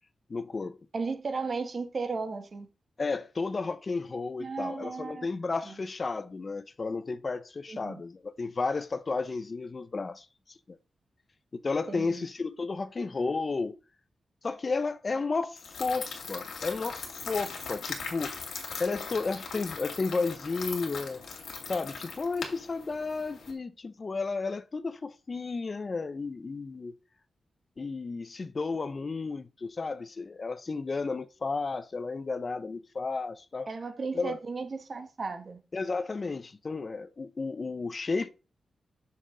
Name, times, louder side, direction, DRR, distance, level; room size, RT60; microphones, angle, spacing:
voice 1, 0.3-0.8 3.0-10.3 11.6-13.7 14.4-18.4 18.8-21.2 21.7-26.9 27.8-33.7 34.1-34.4 35.7-38.3, left 4 dB, 35° left, 0.5 m, -33 dB
voice 2, 0.9-2.7 4.4-5.3 5.6-5.7 7.7-8.0 11.9-12.2 33.7-35.6, right 4 dB, 45° right, 1.3 m, -35 dB
sound 1, 15.6-23.5, left 5 dB, 85° left, 2.3 m, -40 dB
7.2 x 6.3 x 3.7 m
wide cardioid pair, 115°, 0 cm